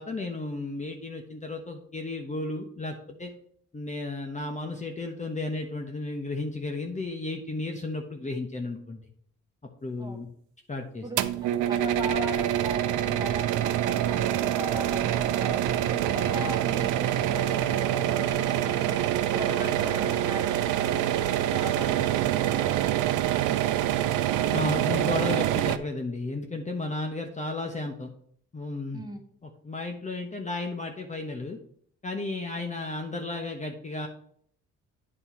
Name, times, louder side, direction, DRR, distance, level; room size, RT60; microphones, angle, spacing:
voice 1, 0.0-3.3 3.7-9.0 9.8-10.3 10.7-11.3 24.5-28.1 28.5-29.0 29.4-31.6 32.0-34.1, left 2 dB, 25° left, 3 dB, 1.1 m, -33 dB
sound 1, 11.2-25.8, right 12 dB, 85° right, 0.6 m, -26 dB
voice 2, 11.7-19.0 19.3-22.8 23.2-23.7 28.9-29.2, equal, 15° right, 3 dB, 1.6 m, -39 dB
9.1 x 4.4 x 4.3 m, 0.62 s
cardioid pair, 90°, 30 cm